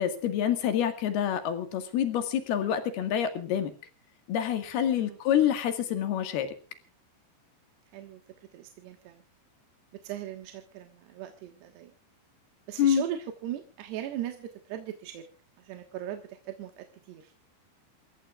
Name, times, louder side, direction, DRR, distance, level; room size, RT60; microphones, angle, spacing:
voice 1, 0.0-3.7 4.3-6.5 12.8-13.0, left 9 dB, 65° left, 8 dB, 3.4 m, -27 dB
voice 2, 8.5-9.2 10.0-11.9 12.7-15.3 15.6-17.3, right 11 dB, 70° right, 5 dB, 3.3 m, -39 dB
28.5 x 15.0 x 2.4 m, 0.35 s
omnidirectional pair, 5.5 m